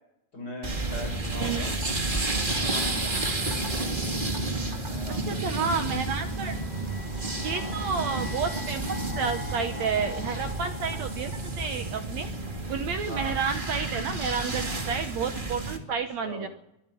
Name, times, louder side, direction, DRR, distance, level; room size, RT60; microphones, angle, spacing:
voice 1, 0.3-1.7 2.4-3.2 4.8-5.8 7.5-7.9 13.1-13.4 16.1-16.5, left 1 dB, 25° left, 2 dB, 7.0 m, -41 dB
sound 1, 0.6-15.8, right 2 dB, 20° right, 1.6 m, -31 dB
voice 2, 1.4-1.7 5.3-6.6 7.4-11.3 11.6-12.3 12.7-16.5, right 6 dB, 65° right, 8 dB, 1.9 m, -30 dB
sound 2, 6.1-13.0, left 4 dB, 75° left, 3.7 m, -43 dB
23.5 x 12.0 x 9.1 m, 0.84 s
omnidirectional pair, 4.1 m